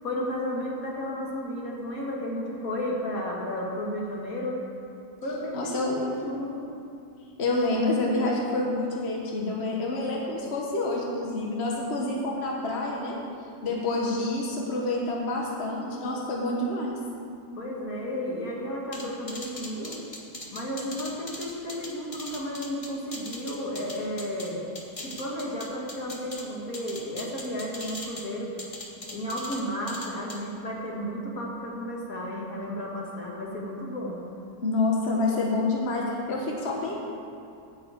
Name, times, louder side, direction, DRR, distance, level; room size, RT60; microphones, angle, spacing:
voice 1, 0.0-4.6 5.2-6.7 13.6-13.8 17.5-20.0 20.5-24.6 25.0-28.5 29.1-34.2, equal, 65° left, -2 dB, 2.0 m, -33 dB
voice 2, 5.5-6.2 7.4-13.2 13.6-17.0 34.6-37.0, left 2 dB, 45° left, -2 dB, 1.5 m, -28 dB
sound 1, 18.9-24.5 24.8-26.4 26.7-28.3 28.6-29.6 29.9-30.4, left 2 dB, 25° left, 1.1 m, -39 dB
9.7 x 6.5 x 8.5 m, 2.6 s
omnidirectional pair, 1.7 m